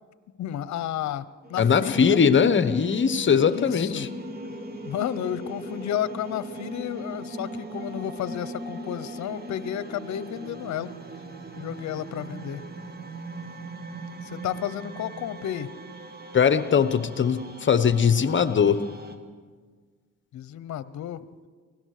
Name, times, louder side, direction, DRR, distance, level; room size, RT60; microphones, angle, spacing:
voice 1, 0.4-2.2 3.4-4.1 4.8-10.9 11.6-12.7 14.2-15.7 20.3-21.3, left 11 dB, 65° left, 15 dB, 0.9 m, -32 dB
sound 1, 1.4-19.2, right 1 dB, 30° right, 2.0 m, -40 dB
voice 2, 1.6-4.1 16.3-18.8, left 6 dB, 40° left, 12 dB, 1.0 m, -20 dB
24.0 x 17.0 x 6.6 m, 1.5 s
cardioid pair, 90°, 30 cm